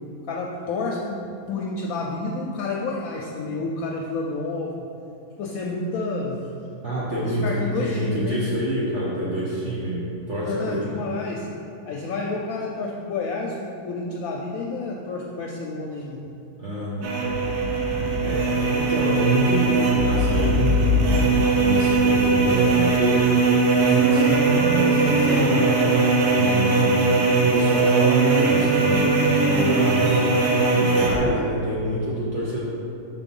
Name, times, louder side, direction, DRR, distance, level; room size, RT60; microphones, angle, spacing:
voice 1, 0.3-4.9 5.4-6.4 7.2-8.4 10.4-11.5 11.8-16.2 21.0-21.1 25.3-25.6, left 3 dB, 70° left, -1 dB, 0.9 m, -30 dB
voice 2, 6.8-10.8 16.6-17.3 18.2-21.2 21.5-25.7 25.9-27.0 27.4-30.3 30.7-32.7, right 1 dB, 55° right, -7 dB, 1.1 m, -27 dB
sound 1, 17.0-31.2, right 3 dB, 80° right, 1.3 m, -20 dB
5.9 x 3.8 x 5.3 m, 2.7 s
omnidirectional pair, 1.7 m